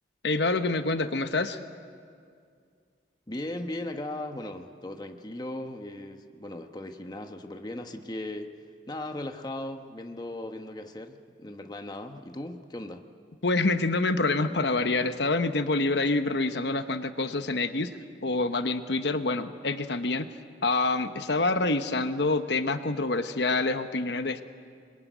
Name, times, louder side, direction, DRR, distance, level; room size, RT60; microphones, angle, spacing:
voice 1, 0.2-1.6 13.4-20.3 20.6-24.4, left 3 dB, 70° left, 9 dB, 1.0 m, -27 dB
voice 2, 3.3-8.5 8.9-13.0, left 1 dB, 25° left, 5 dB, 1.1 m, -37 dB
25.5 x 22.0 x 9.3 m, 2.2 s
head